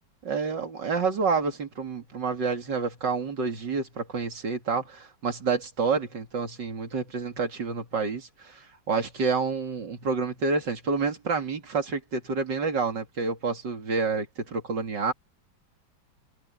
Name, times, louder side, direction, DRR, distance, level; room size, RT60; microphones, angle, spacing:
voice 1, 0.2-15.1, right 4 dB, 60° right, 3.2 m, -28 dB
omnidirectional pair, 2.2 m